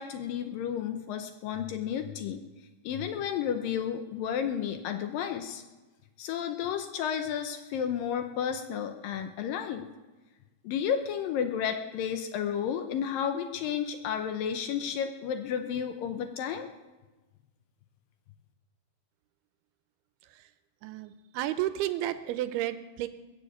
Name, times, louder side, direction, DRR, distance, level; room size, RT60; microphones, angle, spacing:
voice 1, 0.0-2.4 2.8-5.6 6.2-9.9 10.6-16.7, left 8 dB, 75° left, 7 dB, 2.2 m, -32 dB
voice 2, 20.8-23.1, right 13 dB, 85° right, 12 dB, 2.7 m, -32 dB
21.0 x 7.1 x 8.2 m, 1.2 s
omnidirectional pair, 4.6 m